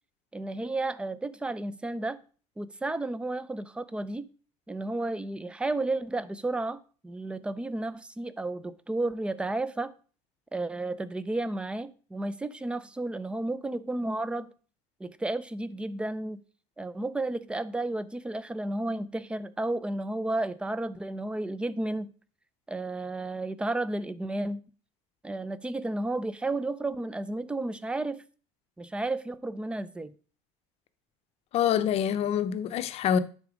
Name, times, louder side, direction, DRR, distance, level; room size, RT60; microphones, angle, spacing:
voice 1, 0.3-2.2 2.6-4.3 4.7-9.9 10.5-14.5 15.0-16.4 16.8-22.1 22.7-24.6 25.2-28.2 28.8-30.1, right 2 dB, 5° right, 0.4 m, -32 dB
voice 2, 31.5-33.2, left 9 dB, 45° left, 0.7 m, -26 dB
9.8 x 4.1 x 4.8 m
supercardioid pair, 130°, 15 cm